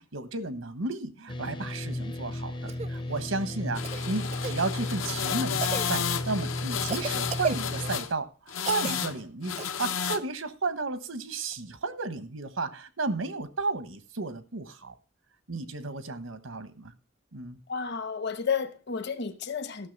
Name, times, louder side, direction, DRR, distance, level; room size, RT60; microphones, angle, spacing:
voice 1, 0.0-8.3 8.6-14.9 15.5-16.9 17.3-17.6, right 3 dB, 90° right, 1.2 m, -33 dB
sound 1, 1.3-8.0, left 1 dB, 25° left, 0.5 m, -35 dB
Cough, 2.7-2.9 3.8-4.6 5.6-5.9 6.8-8.0 8.6-9.0 9.6-9.7 11.5-11.6, right 5 dB, 35° right, 0.4 m, -34 dB
sound 2, 3.8-8.1 8.5-9.2 9.4-10.2, left 8 dB, 85° left, 0.8 m, -32 dB
voice 2, 17.7-19.9, left 6 dB, 60° left, 1.0 m, -31 dB
14.0 x 6.4 x 5.3 m
head